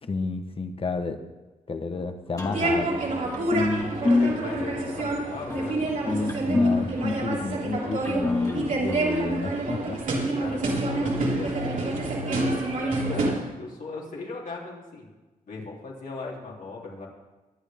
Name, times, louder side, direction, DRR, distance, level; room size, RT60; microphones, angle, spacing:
voice 1, 0.0-1.2 1.7-3.0 6.5-10.2, left 3 dB, 40° left, 8 dB, 1.2 m, -31 dB
sound 1, 2.4-9.8, left 3 dB, 25° left, 2.3 m, -28 dB
sound 2, 2.5-13.3, right 2 dB, 65° right, 3.4 m, -28 dB
voice 2, 3.8-6.3 8.7-8.8 10.4-15.1 15.5-17.1, left 3 dB, 65° left, -2 dB, 3.3 m, -38 dB
23.0 x 8.2 x 3.6 m, 1.2 s
cardioid pair, 85°, 15 cm